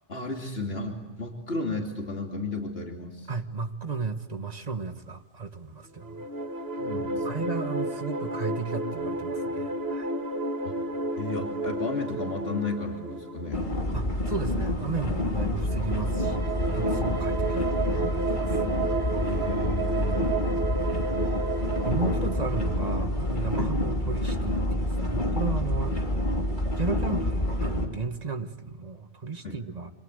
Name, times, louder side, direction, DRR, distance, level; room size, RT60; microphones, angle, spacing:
voice 1, 0.1-3.3 6.8-7.5 10.6-10.8 11.2-13.6 19.2-20.3 23.6-23.7 29.4-29.6, left 2 dB, 80° left, 1 dB, 3.1 m, -33 dB
voice 2, 3.3-6.3 7.2-10.1 13.9-18.6 21.2-21.4 21.8-26.0 26.8-29.9, right 4 dB, 40° right, 8 dB, 1.7 m, -34 dB
sound 1, 6.0-14.6 15.6-23.0, right 3 dB, 80° right, 2.2 m, -32 dB
sound 2, 13.5-27.9, left 1 dB, 50° left, 3.3 m, -28 dB
28.0 x 26.0 x 8.1 m, 1.1 s
omnidirectional pair, 1.0 m